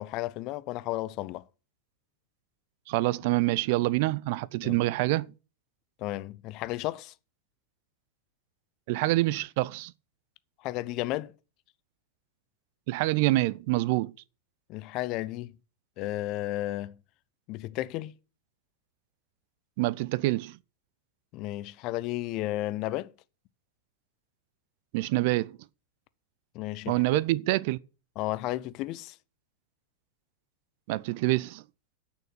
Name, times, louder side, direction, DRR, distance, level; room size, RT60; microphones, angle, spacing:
voice 1, 0.0-1.4 4.6-4.8 6.0-7.1 10.6-11.3 14.7-15.6 16.0-17.0 17.5-18.1 21.3-23.1 26.5-27.0 28.2-29.2, left 16 dB, 40° left, 0.6 m, -33 dB
voice 2, 2.9-5.3 8.9-9.9 12.9-14.1 19.8-20.6 24.9-25.5 26.9-27.8 30.9-31.6, right 19 dB, 50° right, 0.4 m, -26 dB
9.2 x 6.4 x 7.8 m
figure-of-eight pair, 90°, 0 cm